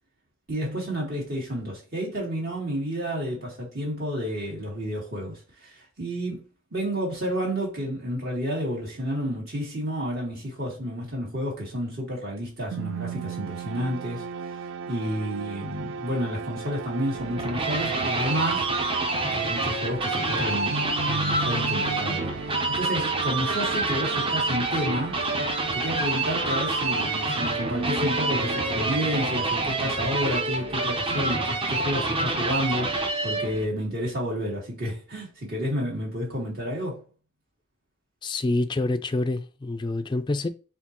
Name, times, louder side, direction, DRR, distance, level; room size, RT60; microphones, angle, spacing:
voice 1, 0.5-14.6 14.9-18.8 19.3-25.2 25.7-37.0, equal, 50° right, 1.8 m, -30 dB
sound 1, 12.7-29.5, right 5 dB, 65° right, 0.3 m, -36 dB
sound 2, 17.1-33.6, right 2 dB, 25° right, 0.7 m, -27 dB
voice 2, 38.2-40.5, left 2 dB, 20° left, 0.3 m, -27 dB
4.3 x 3.7 x 2.9 m
head